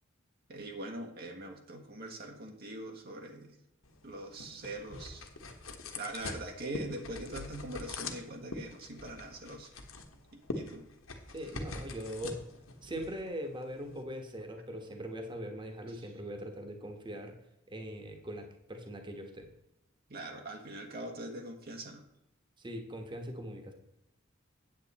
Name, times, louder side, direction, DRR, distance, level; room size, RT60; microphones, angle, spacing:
voice 1, 0.5-3.6 4.0-5.3 5.9-9.7 10.3-10.9 15.9-16.1 20.1-22.1, right 1 dB, 50° right, 2 dB, 1.2 m, -42 dB
sound 1, 3.8-14.0, left 3 dB, 90° left, 1.3 m, -44 dB
voice 2, 11.3-12.4 12.8-17.3 17.7-19.5 22.6-23.7, equal, 25° right, 4 dB, 1.3 m, -41 dB
8.9 x 7.9 x 4.2 m, 0.84 s
head